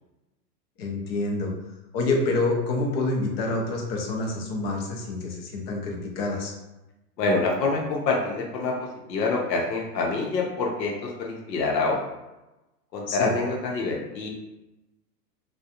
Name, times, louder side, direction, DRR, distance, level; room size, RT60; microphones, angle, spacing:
voice 1, 0.8-1.5 1.9-6.5 13.1-13.3, left 2 dB, 40° left, 1 dB, 0.5 m, -27 dB
voice 2, 7.2-12.0 12.9-14.3, left 3 dB, 85° left, 0 dB, 0.7 m, -26 dB
2.4 x 2.2 x 2.7 m, 1.0 s
hypercardioid pair, 140°, 49 cm